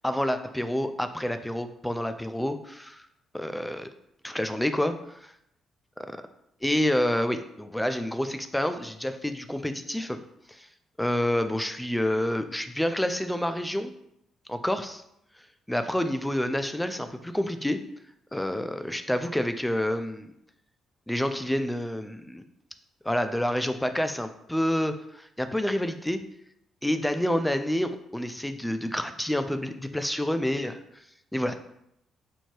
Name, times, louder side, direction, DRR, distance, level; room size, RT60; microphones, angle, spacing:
voice 1, 0.0-3.0 3.3-3.9 4.2-5.3 6.6-10.2 10.5-10.7 11.0-13.9 14.5-15.0 15.7-17.8 18.3-20.3 21.1-22.4 23.0-26.2 26.8-30.8 31.3-31.6, left 1 dB, 5° left, 9 dB, 0.3 m, -28 dB
4.4 x 2.7 x 3.0 m, 0.77 s
cardioid pair, 90°, 0 cm